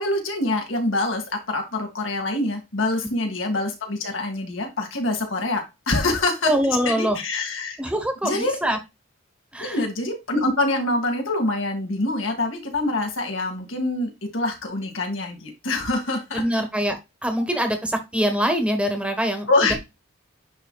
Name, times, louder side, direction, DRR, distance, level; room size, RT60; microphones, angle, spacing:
voice 1, 0.0-6.5 6.9-7.8 8.2-8.6 9.6-16.6 19.5-19.7, left 2 dB, 80° left, 3 dB, 2.2 m, -25 dB
voice 2, 6.4-7.2 7.8-8.8 9.5-9.8 16.3-19.7, equal, 5° right, 6 dB, 1.3 m, -24 dB
9.9 x 4.1 x 2.4 m, 0.23 s
head